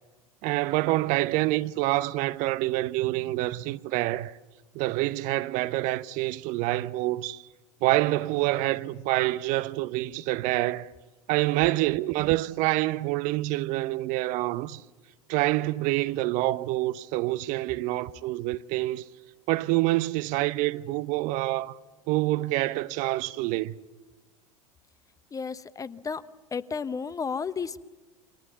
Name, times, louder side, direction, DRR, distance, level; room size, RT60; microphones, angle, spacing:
voice 1, 0.4-4.4 4.7-7.4 7.8-10.9 11.3-14.8 15.3-19.0 19.5-21.8 22.1-23.7, right 18 dB, 45° right, 0.9 m, -27 dB
voice 2, 25.3-26.2 26.5-27.9, left 5 dB, 20° left, 1.0 m, -33 dB
29.5 x 24.5 x 7.1 m
figure-of-eight pair, 80°, 18 cm